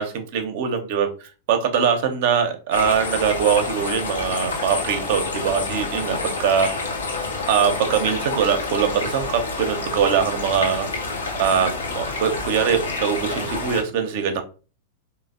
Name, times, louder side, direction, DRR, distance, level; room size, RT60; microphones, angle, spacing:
voice 1, 0.0-6.7 7.5-10.9 11.4-14.4, right 7 dB, 55° right, 6 dB, 0.5 m, -22 dB
sound 1, 2.7-13.8, left 3 dB, 75° left, 0.6 m, -28 dB
3.2 x 2.0 x 2.4 m, 0.35 s
figure-of-eight pair, 95°, 0 cm